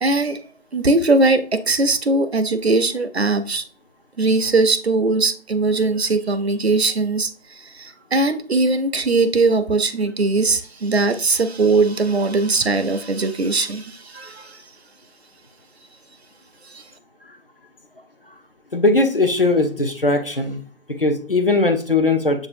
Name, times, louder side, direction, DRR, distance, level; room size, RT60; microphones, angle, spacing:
voice 1, 0.0-0.4 0.7-3.6 4.2-7.3 7.7-14.6 16.7-16.8, right 3 dB, 55° right, 0.5 m, -20 dB
voice 2, 18.7-20.6 21.0-22.5, left 2 dB, 45° left, 0.4 m, -19 dB
6.9 x 2.6 x 2.6 m
figure-of-eight pair, 165°, 39 cm